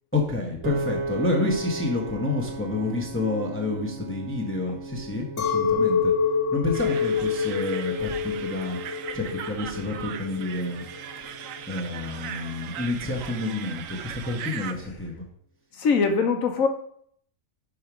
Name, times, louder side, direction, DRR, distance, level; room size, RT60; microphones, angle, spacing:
voice 1, 0.1-6.1 6.5-8.8 9.1-10.8 11.7-15.2, left 2 dB, 10° left, 0 dB, 0.9 m, -29 dB
Piano, 0.6-12.9, right 3 dB, 60° right, 1.2 m, -37 dB
Chink clink, 5.4-10.8, left 6 dB, 60° left, 1.4 m, -26 dB
sound 1, 6.7-14.7, right 8 dB, 75° right, 1.0 m, -38 dB
voice 2, 15.7-16.7, left 5 dB, 80° left, 6 dB, 1.4 m, -22 dB
5.2 x 4.9 x 6.0 m, 0.63 s
omnidirectional pair, 1.4 m